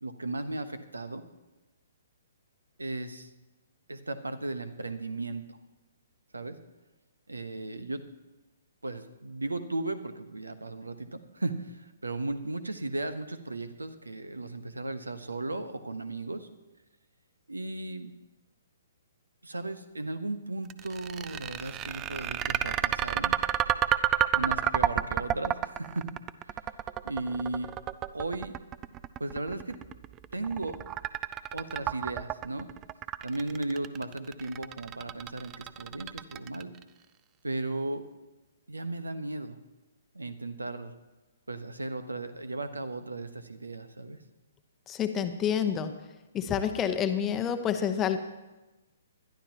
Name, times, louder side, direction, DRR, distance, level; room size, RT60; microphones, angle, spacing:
voice 1, 0.0-1.2 2.8-3.3 3.9-5.6 6.3-6.6 7.3-8.0 8.8-16.5 17.5-18.1 19.4-23.4 24.3-26.1 26.4-26.6 27.0-27.7 28.1-28.6 29.2-29.8 30.3-30.8 31.5-32.7 33.2-36.8 37.4-38.0 38.7-39.6 40.1-40.9 41.5-44.2, right 2 dB, 75° right, 11 dB, 1.1 m, -36 dB
sound 1, 20.7-36.8, right 12 dB, 20° right, 0.4 m, -30 dB
voice 2, 44.9-45.9 46.3-48.2, left 8 dB, 20° left, 8 dB, 0.9 m, -28 dB
20.5 x 12.0 x 2.9 m, 1.1 s
figure-of-eight pair, 125°, 0 cm